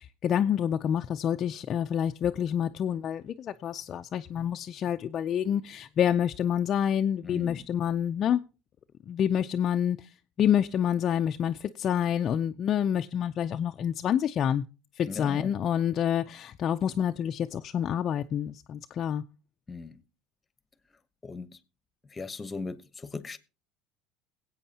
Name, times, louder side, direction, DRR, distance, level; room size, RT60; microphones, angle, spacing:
voice 1, 0.0-8.4 9.1-10.1 10.4-14.6 15.0-19.2, left 9 dB, 45° left, 0.4 m, -28 dB
voice 2, 7.2-7.7 15.1-15.6 19.7-20.0 21.2-21.6 22.0-23.4, left 4 dB, 20° left, 1.0 m, -38 dB
21.0 x 8.3 x 2.8 m
supercardioid pair, 100°, 0 cm